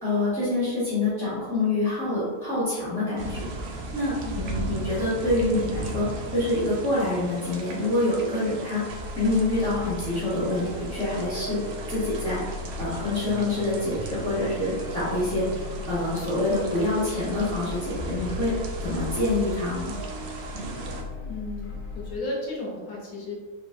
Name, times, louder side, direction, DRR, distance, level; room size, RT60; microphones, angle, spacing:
voice 1, 0.0-6.1 6.3-8.8 9.2-12.4 12.8-18.5 18.8-19.9, left 2 dB, 5° left, -11 dB, 1.0 m, -26 dB
sound 1, 3.2-21.0, right 2 dB, 90° right, 0.5 m, -37 dB
voice 2, 4.2-4.5 21.2-23.3, left 2 dB, 65° left, -3 dB, 1.3 m, -34 dB
sound 2, 8.9-22.2, left 2 dB, 85° left, 1.3 m, -37 dB
4.1 x 2.9 x 2.6 m, 1.4 s
omnidirectional pair, 1.7 m